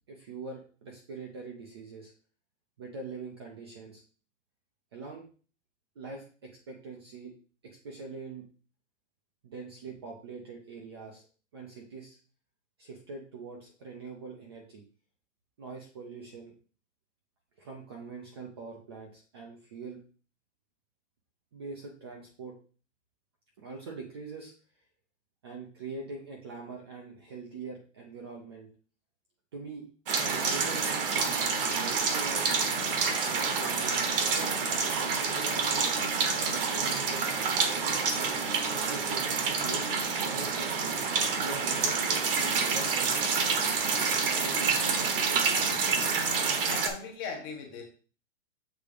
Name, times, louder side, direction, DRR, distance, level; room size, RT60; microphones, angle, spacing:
voice 1, 0.1-2.1 2.8-4.0 4.9-5.2 6.0-7.3 7.6-8.4 9.4-11.2 11.5-12.2 12.8-14.8 15.6-16.5 17.6-20.0 21.5-22.5 23.6-24.5 25.4-28.7 29.5-29.9 30.2-32.4 32.9-35.9 36.3-38.5 38.9-39.9 40.2-41.0 41.4-43.1 43.8-46.0, right 4 dB, 20° right, 0 dB, 0.6 m, -43 dB
sound 1, 30.1-46.9, right 5 dB, 45° right, 1.2 m, -28 dB
voice 2, 46.6-47.8, left 5 dB, 20° left, 2 dB, 0.9 m, -38 dB
6.9 x 3.7 x 4.9 m, 0.38 s
hypercardioid pair, 175°, 38 cm